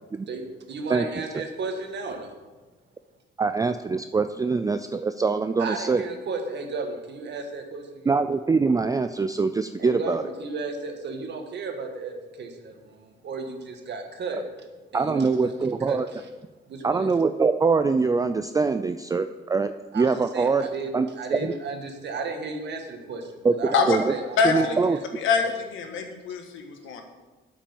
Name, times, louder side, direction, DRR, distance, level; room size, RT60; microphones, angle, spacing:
voice 1, 0.3-2.3 5.6-8.1 9.8-14.4 14.9-15.5 15.8-16.3 16.7-17.1 19.9-25.0 25.4-25.5, right 3 dB, 60° right, 4 dB, 1.7 m, -34 dB
voice 2, 3.4-6.0 8.1-10.2 14.9-16.1 16.8-20.7 20.9-21.5 23.4-23.5 23.9-24.0 24.4-25.0, right 4 dB, 20° right, 10 dB, 0.4 m, -23 dB
voice 3, 24.4-24.8 25.1-27.0, left 5 dB, 80° left, 4 dB, 1.5 m, -24 dB
8.6 x 6.0 x 7.1 m, 1.2 s
cardioid pair, 90°, 20 cm